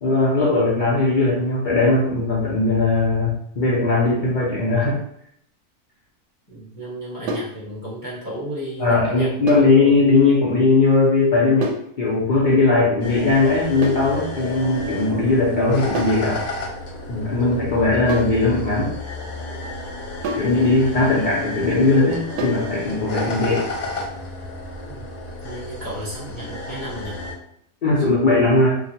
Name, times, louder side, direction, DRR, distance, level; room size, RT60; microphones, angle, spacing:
voice 1, 0.0-5.0 8.8-16.4 17.1-18.9 20.4-23.6 27.8-28.8, left 3 dB, 75° left, -5 dB, 0.4 m, -19 dB
voice 2, 6.5-9.7 24.9-25.1 25.4-27.2, right 1 dB, 35° right, -7 dB, 0.8 m, -33 dB
sound 1, 7.3-7.6 9.5-9.8 11.6-11.9 13.8-14.1 16.0-16.3 18.1-18.4 20.2-20.6 22.4-22.7, right 1 dB, 85° right, 1.1 m, -27 dB
sound 2, 13.0-27.3, left 2 dB, 50° left, 0.8 m, -32 dB
2.8 x 2.4 x 2.7 m, 0.70 s
omnidirectional pair, 1.6 m